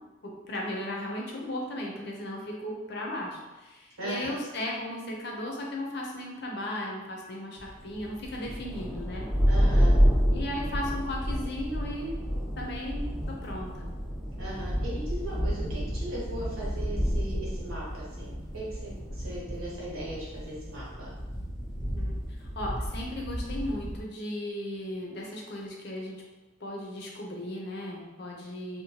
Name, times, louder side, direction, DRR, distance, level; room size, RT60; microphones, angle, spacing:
voice 1, 0.2-9.3 10.3-12.2 12.6-13.9 21.9-26.2 26.6-28.8, left 1 dB, 50° left, -1 dB, 0.5 m, -36 dB
voice 2, 4.0-4.3 9.5-10.0 14.4-21.1, right 1 dB, 85° right, -6 dB, 1.1 m, -38 dB
sound 1, 7.6-24.0, equal, ahead, 0.3 m, -29 dB
2.8 x 2.1 x 2.9 m, 1.2 s
head